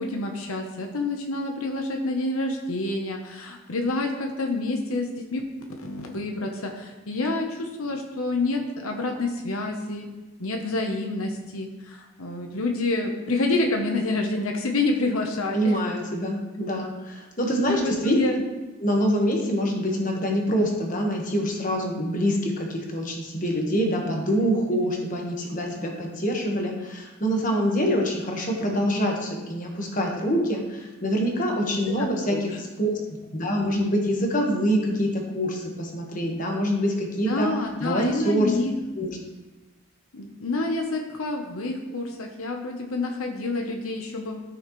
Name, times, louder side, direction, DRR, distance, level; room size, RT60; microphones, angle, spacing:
voice 1, 0.0-10.1 10.4-15.8 17.7-18.4 32.0-32.4 37.3-38.8 40.1-44.4, left 2 dB, 90° left, 2 dB, 1.0 m, -28 dB
voice 2, 15.5-18.4 18.8-32.9 33.3-37.5 37.8-38.6 38.9-39.2, equal, 40° left, 0 dB, 1.4 m, -25 dB
13.5 x 6.3 x 3.2 m, 1.2 s
head